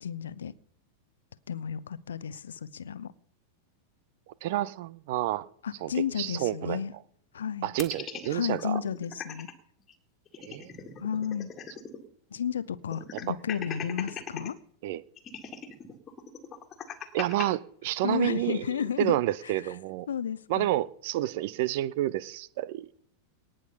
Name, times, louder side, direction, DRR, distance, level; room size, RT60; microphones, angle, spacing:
voice 1, 0.0-0.5 1.5-3.1 5.6-6.9 7.3-7.7 8.3-9.5 11.0-11.5 12.3-14.6 18.0-19.7 20.1-20.7, left 8 dB, 65° left, 0.7 m, -33 dB
voice 2, 4.4-5.5 5.8-5.9 6.2-6.8 7.6-8.8 10.4-10.7 13.1-13.3 14.8-15.0 17.1-18.7 19.0-20.1 20.5-22.9, right 14 dB, 50° right, 0.5 m, -29 dB
sound 1, 7.8-9.5 9.9-10.0 10.3-12.0 12.3-12.4 12.9-14.5 15.2-17.5, left 7 dB, 25° left, 1.9 m, -39 dB
18.5 x 6.4 x 5.5 m
figure-of-eight pair, 90°, 0 cm